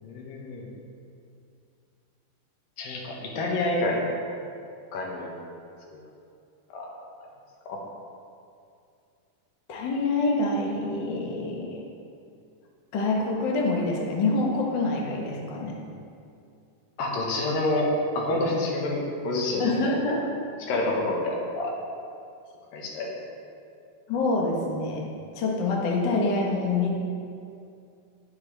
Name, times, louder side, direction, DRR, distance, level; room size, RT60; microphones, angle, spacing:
voice 1, 0.0-0.7 2.8-4.0 4.9-5.3 5.9-6.0 6.7-6.9 7.7-7.8 17.0-17.9 18.2-19.9 20.6-21.7 22.7-23.1, left 2 dB, 85° left, -1 dB, 3.2 m, -28 dB
voice 2, 9.7-11.8 12.9-15.8 19.6-20.3 24.1-25.1 25.3-27.0, left 3 dB, 55° left, -1 dB, 1.3 m, -26 dB
18.5 x 6.9 x 3.4 m, 2.5 s
omnidirectional pair, 3.9 m